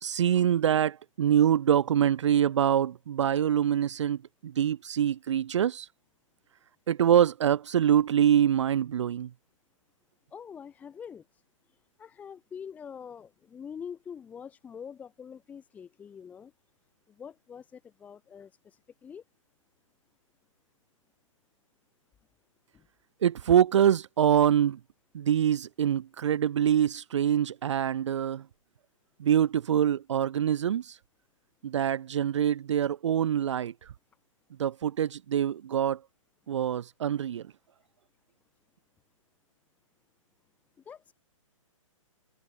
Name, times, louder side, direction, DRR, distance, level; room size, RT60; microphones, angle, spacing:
voice 1, 0.0-5.9 6.9-9.3 23.2-24.8 25.1-28.4 29.2-31.0 31.6-33.7 34.6-36.0 36.5-37.4, right 9 dB, 60° right, 0.5 m, -25 dB
voice 2, 10.3-11.2 12.0-16.5 17.2-19.2 22.7-22.8 40.9-41.1, left 7 dB, 10° left, 1.9 m, -44 dB
hypercardioid pair, 165°, 17 cm